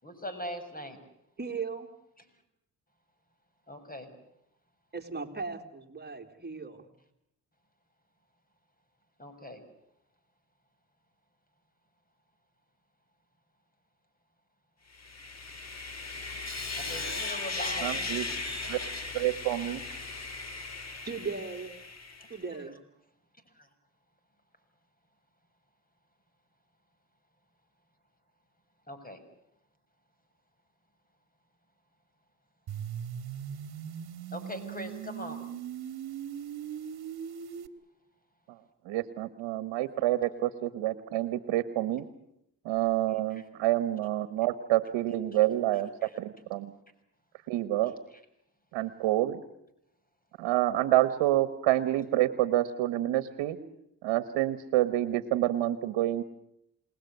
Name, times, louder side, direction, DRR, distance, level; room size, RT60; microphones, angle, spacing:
voice 1, 0.0-1.0 3.7-4.1 9.2-9.6 16.8-18.4 19.6-20.2 22.2-22.3 23.6-23.7 28.9-29.2 34.3-35.4 43.3-43.4 46.0-46.2, left 1 dB, 20° left, 9 dB, 6.6 m, -41 dB
voice 2, 1.4-1.9 4.9-6.9 21.0-21.7 22.3-22.8, right 4 dB, 20° right, 4 dB, 3.8 m, -37 dB
Sawing, 14.9-22.4, left 3 dB, 35° left, 4.0 m, -37 dB
voice 3, 17.8-18.2 18.7-18.8 19.1-19.8 38.8-42.0 42.6-45.9 46.2-46.7 47.5-47.9 48.7-49.4 50.4-53.6 54.0-56.2, right 14 dB, 75° right, 13 dB, 1.5 m, -28 dB
sound 1, 32.7-37.7, right 9 dB, 60° right, 1.9 m, -39 dB
29.0 x 20.0 x 8.2 m, 0.79 s
supercardioid pair, 55°, 44 cm